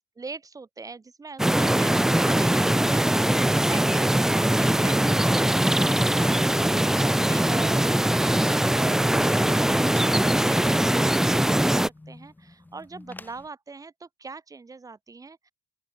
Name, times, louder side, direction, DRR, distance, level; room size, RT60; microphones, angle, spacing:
voice 1, 0.2-11.8 12.1-15.5, right 4 dB, 25° right, 5.4 m, -42 dB
sound 1, 1.4-11.9, right 1 dB, 5° right, 0.4 m, -21 dB
sound 2, 10.6-13.5, left 2 dB, 15° left, 4.5 m, -50 dB
open air
supercardioid pair, 80°, 14 cm